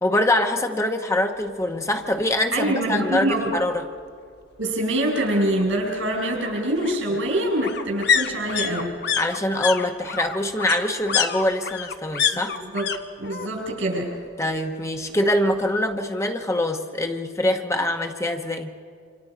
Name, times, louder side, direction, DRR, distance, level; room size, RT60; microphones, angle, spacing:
voice 1, 0.0-3.9 7.1-7.2 9.2-12.6 14.4-18.7, left 1 dB, 15° left, 4 dB, 1.0 m, -24 dB
sound 1, 2.1-2.2 2.5-2.6 2.9-3.9 5.2-13.0 13.2-13.8 14.1-15.1 15.4-15.5, left 7 dB, 55° left, 1.1 m, -28 dB
voice 2, 2.5-3.5 4.6-9.0 12.7-12.9 13.2-14.1, right 1 dB, 90° right, -1 dB, 6.7 m, -24 dB
27.5 x 26.0 x 5.0 m, 2.2 s
head